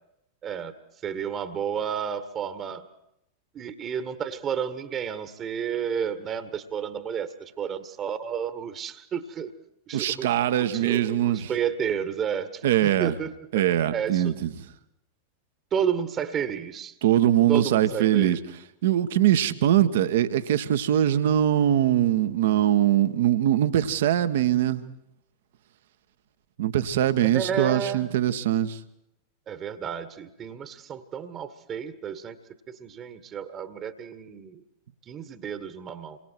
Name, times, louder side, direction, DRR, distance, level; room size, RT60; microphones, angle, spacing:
voice 1, 0.4-0.7 1.0-2.8 3.5-9.5 9.9-10.3 10.7-14.3 15.7-16.9 17.5-18.4 27.3-28.1 29.5-32.4 32.7-34.6 35.1-36.2, right 8 dB, 30° right, 11 dB, 1.7 m, -31 dB
voice 2, 9.9-11.5 12.6-13.1 13.5-14.7 17.0-18.4 18.8-24.8 26.6-28.8, right 11 dB, 55° right, 11 dB, 1.5 m, -22 dB
28.5 x 23.5 x 4.7 m, 0.79 s
figure-of-eight pair, 90°, 0 cm